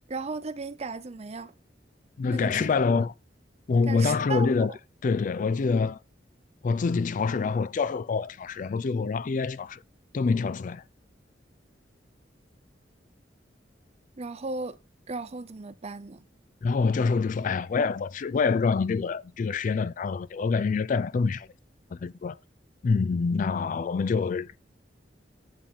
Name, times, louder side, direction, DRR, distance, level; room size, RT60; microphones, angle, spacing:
voice 1, 0.1-1.5 2.3-2.7 2.9-3.0 3.9-4.8 14.2-14.8 15.1-16.2, right 3 dB, 35° right, 0.6 m, -36 dB
voice 2, 2.2-3.1 3.7-4.7 5.0-6.0 6.6-9.8 10.1-10.8 16.6-21.5 21.9-22.4 22.8-24.6, left 4 dB, 45° left, 0.4 m, -26 dB
8.6 x 7.0 x 3.7 m
head